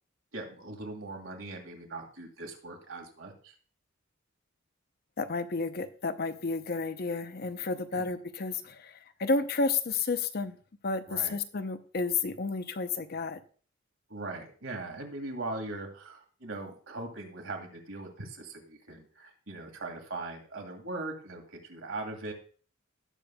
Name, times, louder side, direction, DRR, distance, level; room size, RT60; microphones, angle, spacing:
voice 1, 0.3-3.5 7.9-8.1 11.1-11.4 14.1-22.3, right 2 dB, 75° right, 3 dB, 2.1 m, -40 dB
voice 2, 5.2-10.6 10.8-13.4, left 4 dB, 50° left, 10 dB, 0.7 m, -31 dB
17.0 x 6.8 x 2.3 m, 0.42 s
head